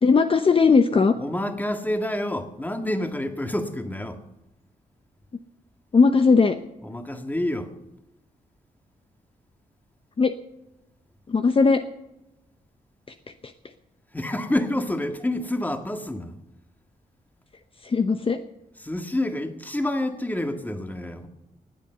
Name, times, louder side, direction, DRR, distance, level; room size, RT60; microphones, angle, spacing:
voice 1, 0.0-1.1 5.9-6.6 10.2-10.3 11.3-11.8 17.8-18.4, left 4 dB, 35° left, 0.8 m, -18 dB
voice 2, 1.2-4.2 6.8-7.7 14.1-16.3 18.8-21.3, left 1 dB, 10° left, 1.7 m, -28 dB
18.5 x 8.6 x 6.8 m
cardioid pair, 85°, 15 cm